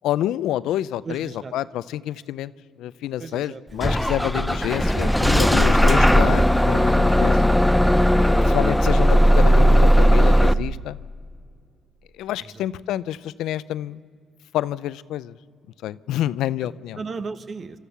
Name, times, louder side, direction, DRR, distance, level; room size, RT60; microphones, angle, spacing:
voice 1, 0.0-2.5 2.8-7.4 8.4-11.0 12.2-14.0 14.5-15.3 15.8-17.0, left 13 dB, 90° left, 17 dB, 0.5 m, -28 dB
voice 2, 1.0-1.5 3.2-3.9 12.4-12.6 17.0-17.8, right 4 dB, 45° right, 12 dB, 1.1 m, -36 dB
Bus / Engine starting, 3.8-10.5, equal, 5° left, 0.5 m, -17 dB
29.5 x 13.5 x 6.9 m, 2.3 s
cardioid pair, 90°, 0 cm